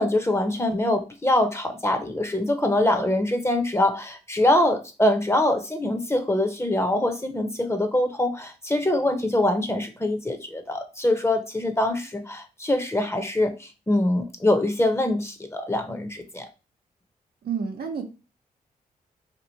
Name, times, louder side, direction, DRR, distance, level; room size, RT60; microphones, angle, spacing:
voice 1, 0.0-16.5, left 1 dB, 15° left, 6 dB, 0.9 m, -24 dB
voice 2, 17.4-18.0, right 6 dB, 75° right, 3 dB, 0.8 m, -29 dB
3.0 x 2.7 x 4.0 m, 0.31 s
supercardioid pair, 50°, 16 cm